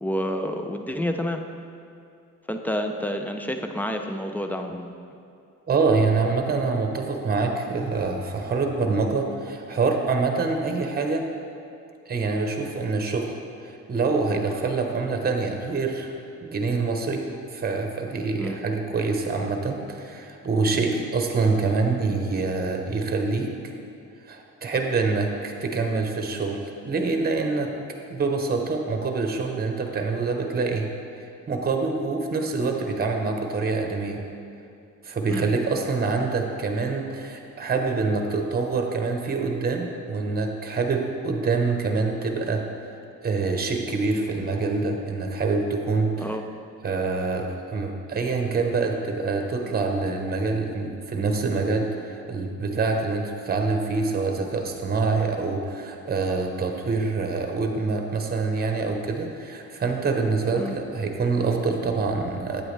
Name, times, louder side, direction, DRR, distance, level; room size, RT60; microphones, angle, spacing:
voice 1, 0.0-1.4 2.5-4.9 18.4-18.6 35.3-35.5 46.2-46.4 60.5-60.8, equal, 5° left, 5 dB, 0.6 m, -29 dB
voice 2, 5.7-11.3 12.1-13.3 13.6-16.1 16.4-23.7 24.2-27.7 28.1-30.9 31.5-34.2 35.0-42.7 43.2-46.3 46.8-62.6, right 4 dB, 30° right, 3 dB, 1.0 m, -25 dB
8.7 x 8.5 x 3.3 m, 2.5 s
cardioid pair, 90°, 30 cm